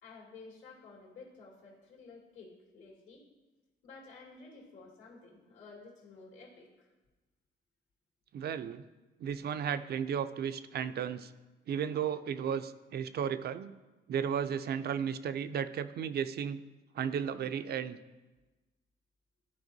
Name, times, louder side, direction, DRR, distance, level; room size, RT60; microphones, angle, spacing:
voice 1, 0.0-3.2 3.8-6.9, left 4 dB, 80° left, -3 dB, 2.3 m, -53 dB
voice 2, 8.3-8.8 9.2-11.3 11.7-13.7 14.1-16.6 16.9-18.0, right 8 dB, 55° right, 12 dB, 0.4 m, -34 dB
12.5 x 4.4 x 2.7 m, 1.1 s
cardioid pair, 90°, 20 cm